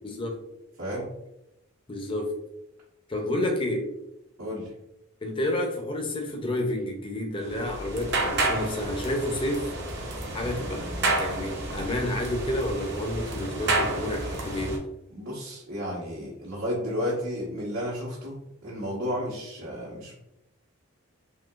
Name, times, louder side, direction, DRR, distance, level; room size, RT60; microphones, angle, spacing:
voice 1, 0.0-0.4 1.9-2.3 3.1-3.9 5.2-9.7 10.3-14.8, left 1 dB, 25° left, 2 dB, 0.5 m, -30 dB
voice 2, 0.8-1.1 4.4-4.7 15.1-20.2, equal, 90° right, -8 dB, 1.1 m, -32 dB
sound 1, 7.4-14.8, right 2 dB, 55° right, 0.7 m, -30 dB
3.7 x 2.8 x 2.4 m, 0.87 s
head